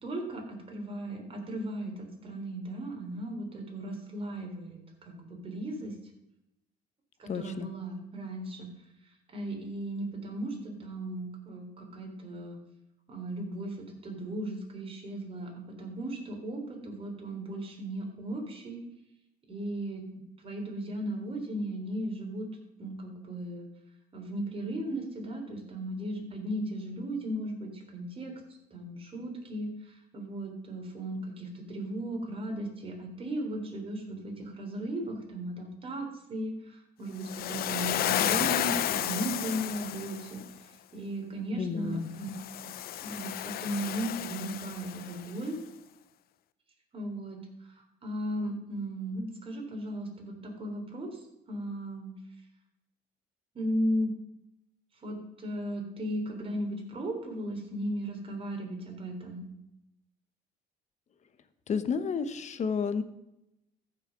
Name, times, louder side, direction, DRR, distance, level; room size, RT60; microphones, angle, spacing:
voice 1, 0.0-5.9 7.2-8.7 9.3-12.6 13.1-18.8 19.5-22.5 22.8-23.7 24.1-28.3 28.7-29.7 30.1-40.4 40.9-42.3 42.6-42.7 43.0-45.6 46.9-47.4 48.0-51.2 51.5-52.1 53.6-54.1 55.0-59.4, right 1 dB, 35° right, 2 dB, 3.7 m, -36 dB
voice 2, 7.3-7.7 41.6-42.1 61.7-63.0, left 6 dB, 45° left, 11 dB, 1.2 m, -31 dB
Waves surf, 37.2-40.4 42.2-45.3, left 12 dB, 65° left, 0.7 m, -32 dB
14.5 x 6.6 x 6.1 m, 0.87 s
cardioid pair, 110°, 17 cm